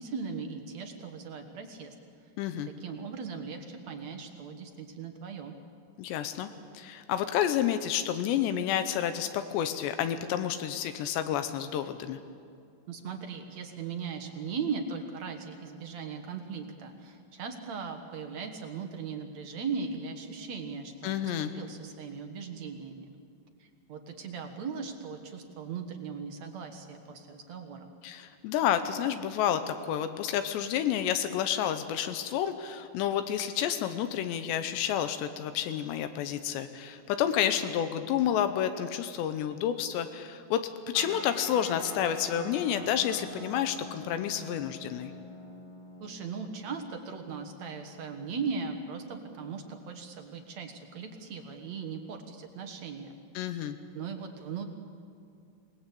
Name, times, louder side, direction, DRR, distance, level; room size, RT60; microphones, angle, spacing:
voice 1, 0.0-2.0 2.8-5.6 12.9-23.1 23.6-27.9 46.0-53.1 53.5-53.7 53.9-54.7, right 5 dB, 55° right, 5 dB, 2.1 m, -38 dB
voice 2, 2.4-2.7 6.0-6.5 6.7-12.2 21.0-21.5 28.0-40.6 40.9-45.1 53.4-53.8, left 10 dB, 85° left, 9 dB, 3.1 m, -30 dB
sound 1, 40.9-51.8, left 1 dB, 20° left, 1.3 m, -47 dB
26.5 x 19.0 x 8.4 m, 2.4 s
omnidirectional pair, 4.9 m